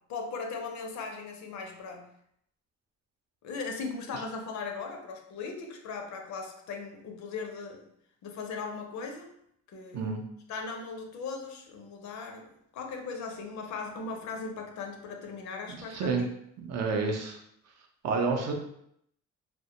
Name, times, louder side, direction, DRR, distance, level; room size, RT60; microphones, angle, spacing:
voice 1, 0.1-2.1 3.4-7.9 8.2-9.3 9.7-10.1 10.5-16.3, left 4 dB, 70° left, 3 dB, 0.5 m, -38 dB
voice 2, 15.7-16.3 16.6-17.4 18.0-18.5, right 4 dB, 60° right, 2 dB, 0.5 m, -29 dB
2.1 x 2.1 x 2.8 m, 0.73 s
cardioid pair, 90°, 30 cm